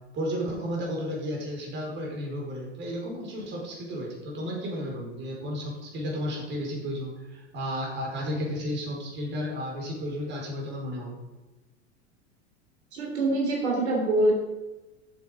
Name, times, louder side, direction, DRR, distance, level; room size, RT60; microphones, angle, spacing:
voice 1, 0.1-11.2, equal, 30° right, -1 dB, 4.6 m, -33 dB
voice 2, 12.9-14.3, right 2 dB, 65° right, -1 dB, 3.3 m, -24 dB
13.0 x 8.0 x 5.1 m, 1.1 s
figure-of-eight pair, 90°, 36 cm